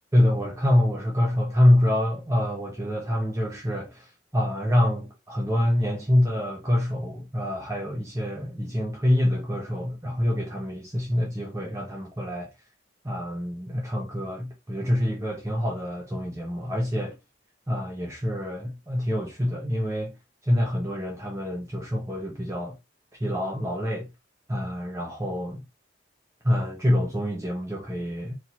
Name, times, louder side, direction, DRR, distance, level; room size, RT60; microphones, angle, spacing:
voice 1, 0.1-12.5 13.0-17.2 17.7-20.1 20.4-22.7 23.2-24.1 24.5-25.6 26.4-28.3, left 1 dB, 15° right, 0.8 m, -26 dB
4.1 x 3.2 x 3.0 m
head